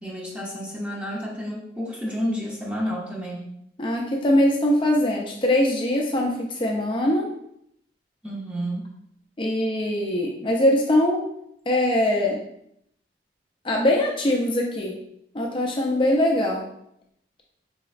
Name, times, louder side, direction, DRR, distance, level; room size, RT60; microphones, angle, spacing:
voice 1, 0.0-3.5 8.2-8.9, equal, 5° right, -5 dB, 0.8 m, -30 dB
voice 2, 3.8-7.3 9.4-11.3 11.7-12.4 13.6-14.9 15.3-16.6, left 1 dB, 30° left, 0 dB, 0.5 m, -22 dB
4.2 x 2.9 x 2.4 m, 0.73 s
head